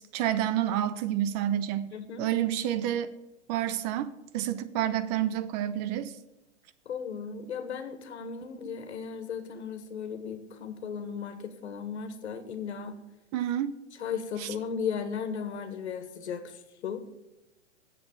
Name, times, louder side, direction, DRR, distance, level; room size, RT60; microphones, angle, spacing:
voice 1, 0.1-3.1 3.5-6.1 13.3-13.7 14.4-14.5, right 11 dB, 35° right, 13 dB, 0.7 m, -29 dB
voice 2, 1.9-2.3 6.8-13.0 14.0-17.0, left 6 dB, 70° left, 8 dB, 1.7 m, -36 dB
7.8 x 7.7 x 7.2 m, 0.96 s
hypercardioid pair, 120°, 35 cm